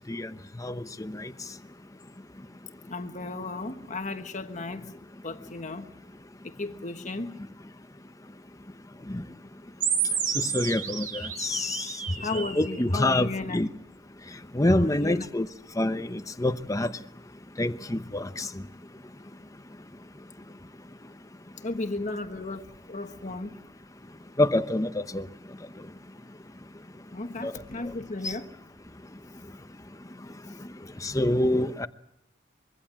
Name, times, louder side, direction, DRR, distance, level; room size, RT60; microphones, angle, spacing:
voice 1, 0.6-1.3 9.1-9.2 10.4-11.8 12.3-13.7 14.5-15.5 15.8-16.9 17.6-18.5 24.4-25.2 27.4-27.5 31.0-31.9, left 1 dB, 20° left, 0.9 m, -26 dB
voice 2, 2.9-4.9 5.2-5.9 6.4-7.4 12.2-13.6 14.7-15.3 21.6-23.6 27.1-28.5, left 2 dB, 40° left, 1.4 m, -34 dB
sound 1, 9.8-12.8, right 7 dB, 50° right, 3.9 m, -30 dB
25.0 x 23.5 x 7.6 m
head